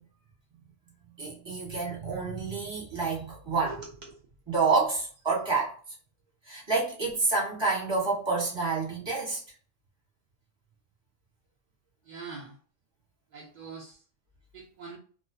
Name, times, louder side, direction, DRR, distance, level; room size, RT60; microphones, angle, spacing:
voice 1, 1.2-3.7 4.5-5.7 6.5-9.4, right 4 dB, 25° right, 1.1 m, -28 dB
voice 2, 3.6-4.1 12.0-12.6 13.3-14.0 14.5-15.0, right 4 dB, 65° right, 0.4 m, -43 dB
2.5 x 2.1 x 2.6 m
omnidirectional pair, 1.2 m